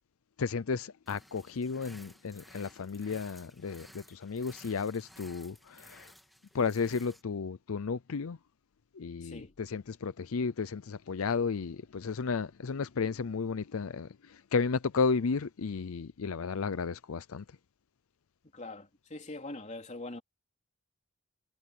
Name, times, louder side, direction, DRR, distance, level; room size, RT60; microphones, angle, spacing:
voice 1, 0.4-6.1 6.5-8.4 8.9-17.4, left 5 dB, 75° left, 0.5 m, -33 dB
sound 1, 1.1-7.2, equal, ahead, 1.8 m, -56 dB
voice 2, 9.2-9.5 18.5-20.2, left 2 dB, 35° left, 3.3 m, -43 dB
head